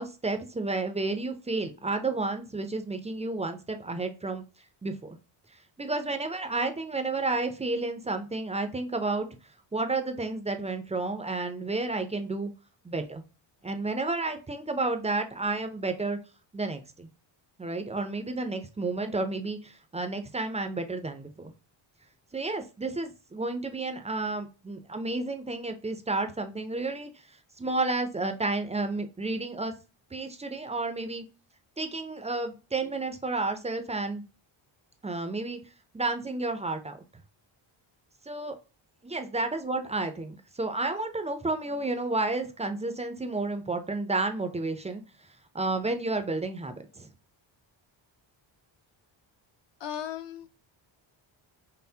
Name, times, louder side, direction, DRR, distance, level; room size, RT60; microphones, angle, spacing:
voice 1, 0.0-4.4 4.8-5.2 5.8-9.3 9.7-12.5 12.8-13.2 13.6-16.2 16.5-17.1 17.6-21.5 22.3-27.1 27.6-29.7 30.1-31.2 31.8-34.2 35.0-35.6 35.9-37.0 38.3-38.6 39.0-45.0 45.5-47.1, right 3 dB, 15° right, 0.4 m, -31 dB
voice 2, 49.8-50.5, left 9 dB, 60° left, 0.7 m, -36 dB
5.6 x 2.0 x 2.7 m
cardioid pair, 130°, 48 cm